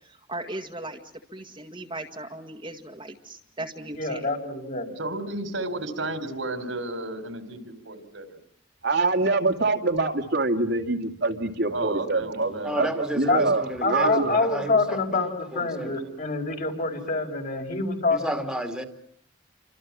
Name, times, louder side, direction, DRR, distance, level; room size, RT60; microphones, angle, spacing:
voice 1, 0.3-1.0 1.3-4.2, right 1 dB, 25° right, 1.9 m, -37 dB
voice 2, 4.0-4.9 13.3-13.4 13.8-18.2, left 3 dB, 45° left, 5.3 m, -26 dB
voice 3, 5.0-8.4 11.7-13.0 15.8-16.1, right 2 dB, 80° right, 4.1 m, -33 dB
voice 4, 8.8-14.4, right 3 dB, 60° right, 2.5 m, -25 dB
voice 5, 12.6-15.3 15.5-15.9 18.1-18.8, right 1 dB, 5° right, 2.5 m, -32 dB
29.0 x 25.5 x 7.5 m
head